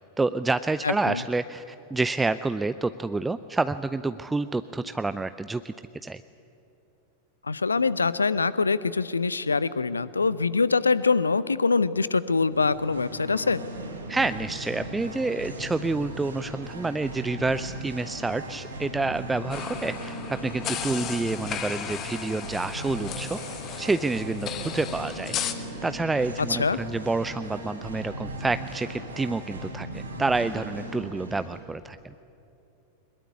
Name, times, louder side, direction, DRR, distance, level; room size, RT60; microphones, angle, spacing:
voice 1, 0.2-1.6 1.9-5.7 6.0-6.2 14.1-23.4 23.8-32.1, right 3 dB, 10° right, 13 dB, 0.5 m, -28 dB
voice 2, 0.8-1.2 7.5-13.6 26.5-26.8, left 4 dB, 75° left, 18 dB, 0.7 m, -24 dB
Singing, 12.5-31.6, right 1 dB, 75° right, 4.6 m, -38 dB
sound 1, 19.5-25.5, left 9 dB, 30° left, 1.5 m, -35 dB
22.0 x 21.0 x 9.7 m, 2.9 s
figure-of-eight pair, 90°, 0 cm